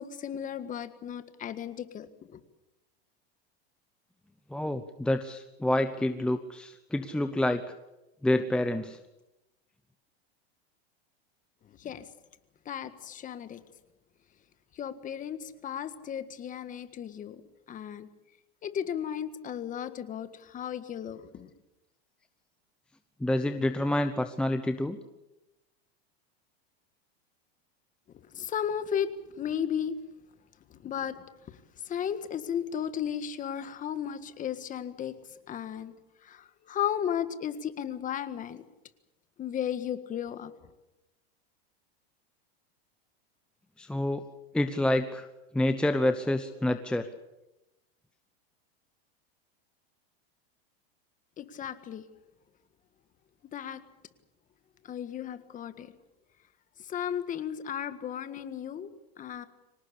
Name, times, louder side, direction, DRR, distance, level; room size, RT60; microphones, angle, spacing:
voice 1, 0.0-2.4 11.8-12.1 12.6-13.6 14.7-17.4 17.7-18.1 18.6-21.5 28.3-30.0 30.7-31.6 31.8-35.2 35.5-35.9 36.2-38.6 39.4-40.5 51.4-52.0 53.5-53.8 54.8-55.9 56.8-58.9 59.2-59.5, left 9 dB, 25° left, 11 dB, 1.7 m, -35 dB
voice 2, 4.5-7.6 8.2-9.0 23.2-25.0 43.8-44.2 44.5-45.3 45.5-47.1, left 1 dB, 5° left, 8 dB, 0.8 m, -28 dB
25.0 x 18.5 x 8.5 m, 0.98 s
supercardioid pair, 145°, 31 cm